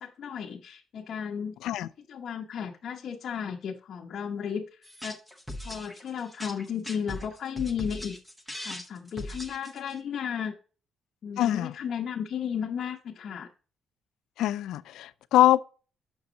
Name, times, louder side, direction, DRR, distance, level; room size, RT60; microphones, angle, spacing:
voice 1, 0.0-1.6 2.1-4.6 5.0-5.2 5.6-8.2 8.6-10.5 11.2-13.5, left 7 dB, 50° left, 0.9 m, -34 dB
sound 1, 4.8-10.0, left 1 dB, 5° right, 0.8 m, -39 dB
voice 2, 11.4-11.7 14.4-15.6, left 13 dB, 85° left, 0.4 m, -23 dB
7.1 x 6.2 x 3.8 m
cardioid pair, 155°, 0 cm